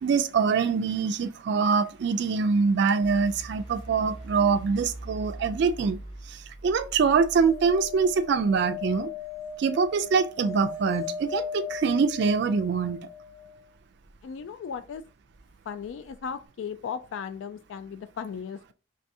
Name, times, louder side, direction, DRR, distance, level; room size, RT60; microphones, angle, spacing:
voice 1, 0.0-6.0 6.3-9.1 9.6-13.0, right 5 dB, 65° right, 0.3 m, -24 dB
sound 1, 3.0-10.1, right 1 dB, 50° left, 1.8 m, -43 dB
sound 2, 7.4-13.6 15.8-15.9 16.1-16.2, left 7 dB, 15° left, 0.5 m, -37 dB
voice 2, 14.2-15.0 15.7-18.7, left 6 dB, 80° left, 0.3 m, -36 dB
4.6 x 3.2 x 2.6 m
head